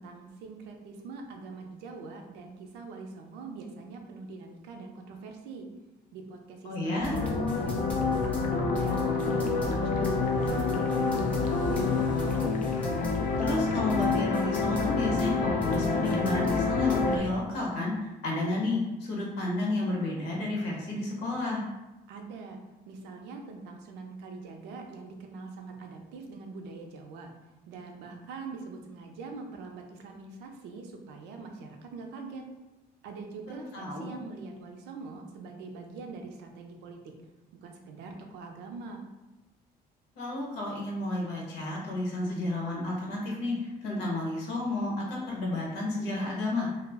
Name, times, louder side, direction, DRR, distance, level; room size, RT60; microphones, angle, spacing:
voice 1, 0.0-5.7 6.1-7.3 7.8-12.1 22.1-22.6 22.9-27.3 27.7-32.5 33.0-37.0 37.6-39.0, right 4 dB, 90° right, 3 dB, 0.5 m, -43 dB
voice 2, 6.6-7.1 13.4-21.7 33.5-34.1 40.2-46.7, left 2 dB, 90° left, -2 dB, 0.9 m, -31 dB
sound 1, 7.0-17.2, left 2 dB, 10° left, 0.6 m, -38 dB
sound 2, 7.1-17.2, left 4 dB, 50° left, 0.4 m, -28 dB
2.4 x 2.0 x 3.4 m, 1.0 s
cardioid pair, 110°, 17 cm